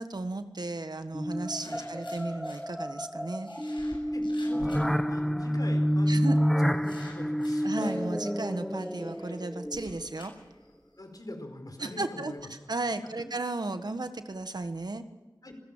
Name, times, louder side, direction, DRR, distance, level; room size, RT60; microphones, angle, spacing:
voice 1, 0.0-3.5 6.1-6.4 7.6-10.3 11.8-15.0, right 2 dB, 60° right, 9 dB, 1.5 m, -34 dB
sound 1, 0.9-1.0 1.5-2.6 3.4-5.0 5.9-6.2 6.8-8.0 8.7-11.0, left 2 dB, 85° left, 7.0 m, -53 dB
sound 2, 1.1-10.2, equal, 5° left, 1.0 m, -29 dB
voice 2, 4.1-6.2 6.7-7.7 11.0-12.5 15.4-15.5, left 1 dB, 50° left, 5 dB, 4.7 m, -43 dB
27.0 x 16.5 x 7.3 m, 1.2 s
wide cardioid pair, 70°, 8 cm